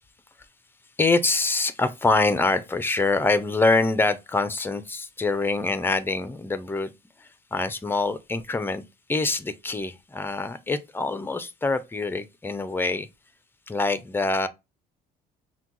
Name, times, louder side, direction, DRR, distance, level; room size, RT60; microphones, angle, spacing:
voice 1, 1.0-6.9 7.2-8.8 9.1-13.1 13.7-14.5, left 3 dB, 10° left, 0.6 m, -25 dB
5.7 x 2.3 x 3.0 m
cardioid pair, 110°, 17 cm